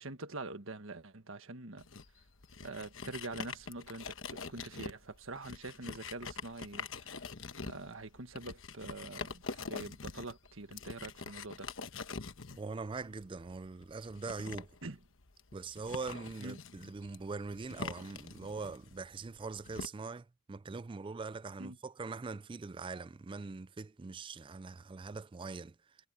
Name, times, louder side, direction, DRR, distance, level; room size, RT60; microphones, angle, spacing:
voice 1, 0.0-1.9 2.6-7.3 7.6-11.7 14.8-15.0 16.4-16.6 21.6-21.8, right 2 dB, 60° right, 1.5 m, -45 dB
sound 1, 1.8-19.9, left 4 dB, 60° left, 1.2 m, -45 dB
voice 2, 12.5-14.7 15.5-25.8, right 4 dB, 20° right, 0.3 m, -42 dB
head